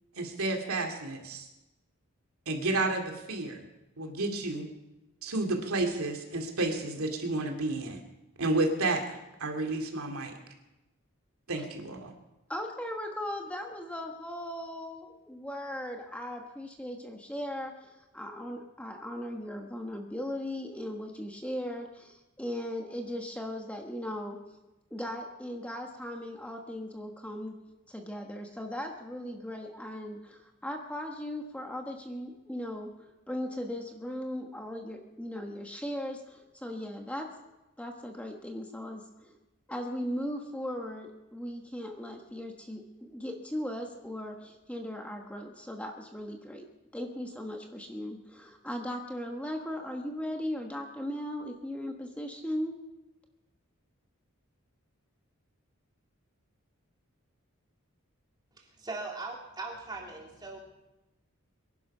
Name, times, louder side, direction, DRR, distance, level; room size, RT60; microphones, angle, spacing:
voice 1, 0.2-1.5 2.5-3.6 4.0-4.7 5.2-8.0 8.4-10.3 11.5-12.1, right 2 dB, 85° right, 3 dB, 2.6 m, -31 dB
voice 2, 12.5-24.4 24.9-27.5 27.9-37.3 37.8-39.4 39.7-46.7 46.9-52.8, left 1 dB, 5° left, 3 dB, 1.2 m, -38 dB
voice 3, 58.6-60.6, right 3 dB, 20° right, -1 dB, 2.9 m, -40 dB
23.5 x 11.0 x 5.5 m, 1.0 s
head